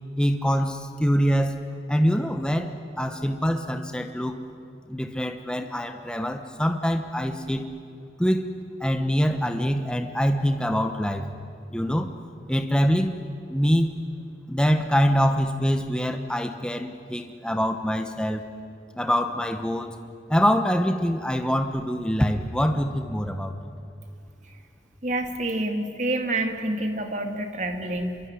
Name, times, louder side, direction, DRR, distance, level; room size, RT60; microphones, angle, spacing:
voice 1, 0.2-1.6 1.9-2.7 3.0-4.4 4.9-7.7 8.2-8.5 8.8-11.3 11.7-12.1 12.5-13.2 13.5-13.9 14.5-18.4 18.9-19.9 20.3-23.7, equal, 5° left, 6 dB, 1.1 m, -24 dB
voice 2, 25.0-28.2, right 1 dB, 40° right, 5 dB, 2.4 m, -28 dB
26.0 x 23.0 x 9.8 m, 2.4 s
head